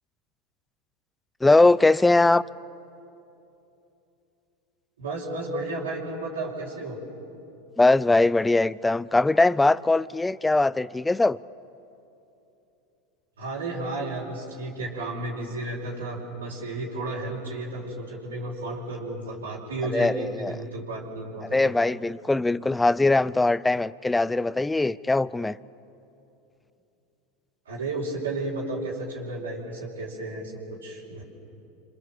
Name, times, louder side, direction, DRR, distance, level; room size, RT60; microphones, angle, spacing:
voice 1, 1.4-2.4 7.8-11.4 19.9-20.6 21.5-25.6, left 2 dB, 10° left, 0.6 m, -21 dB
voice 2, 5.0-7.0 13.4-21.7 27.6-31.2, right 2 dB, 85° right, 5.1 m, -33 dB
29.0 x 26.0 x 7.6 m
hypercardioid pair, 85°, 0 cm